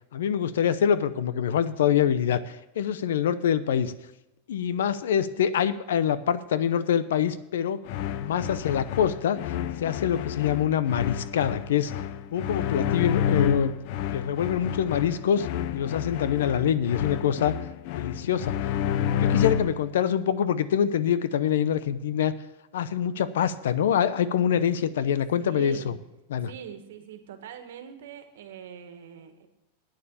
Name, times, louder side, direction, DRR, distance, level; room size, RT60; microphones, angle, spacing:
voice 1, 0.1-3.9 4.5-7.8 8.2-9.4 9.8-11.9 12.3-13.7 14.1-15.5 15.7-17.5 17.9-18.7 19.1-22.3 22.7-25.9 26.3-26.5, left 9 dB, 90° left, 15 dB, 0.7 m, -25 dB
sound 1, 7.9-19.9, left 9 dB, 45° left, 0.5 m, -30 dB
voice 2, 25.4-25.9 26.5-29.5, right 8 dB, 80° right, 7 dB, 1.6 m, -42 dB
9.1 x 7.0 x 8.9 m, 0.93 s
supercardioid pair, 160°, 0 cm